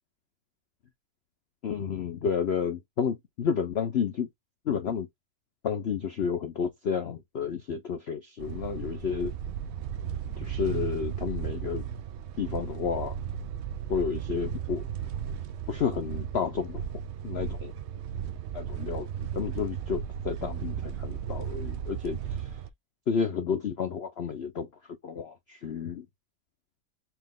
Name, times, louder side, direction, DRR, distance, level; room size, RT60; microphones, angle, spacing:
voice 1, 1.6-4.3 4.7-5.1 5.6-9.3 10.4-11.9 12.4-13.2 13.9-14.9 15.7-16.8 17.2-17.7 18.5-22.5 23.1-24.7 25.0-26.0, left 6 dB, 55° left, 0.7 m, -31 dB
sound 1, 8.4-22.7, right 8 dB, 80° right, 0.6 m, -35 dB
4.5 x 3.0 x 3.6 m
omnidirectional pair, 1.8 m